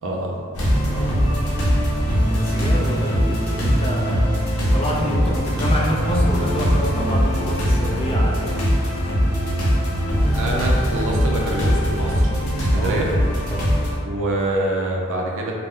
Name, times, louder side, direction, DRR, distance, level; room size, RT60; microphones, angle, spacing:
voice 1, 0.0-0.4 10.3-12.3 12.6-13.1 14.0-15.5, right 1 dB, 60° right, -2 dB, 0.4 m, -25 dB
sound 1, 0.5-14.0, equal, 70° left, 0.7 m, -21 dB
voice 2, 0.8-1.5 2.3-4.2 4.7-8.5 12.7-13.0 13.5-13.7, equal, 25° left, -3 dB, 0.4 m, -27 dB
2.2 x 2.1 x 3.5 m, 2.2 s
head